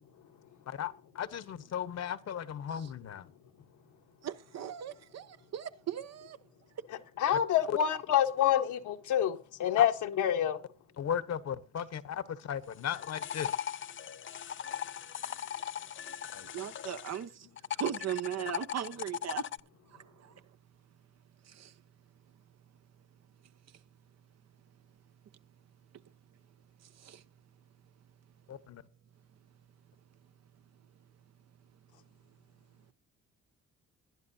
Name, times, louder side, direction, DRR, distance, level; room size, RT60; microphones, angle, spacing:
voice 1, 0.7-3.3 7.7-7.8 9.8-9.9 11.0-13.6 16.3-16.5 28.5-28.8, left 9 dB, 55° left, 1.2 m, -36 dB
voice 2, 4.2-6.4 16.5-17.5 17.7-19.4 19.9-20.3 21.5-21.7 27.0-27.2, right 10 dB, 60° right, 1.0 m, -38 dB
voice 3, 6.9-10.6, left 10 dB, 80° left, 1.4 m, -27 dB
sound 1, 12.6-17.2 17.6-19.6, left 9 dB, 40° left, 0.5 m, -38 dB
20.5 x 10.5 x 2.8 m
cardioid pair, 90°, 30 cm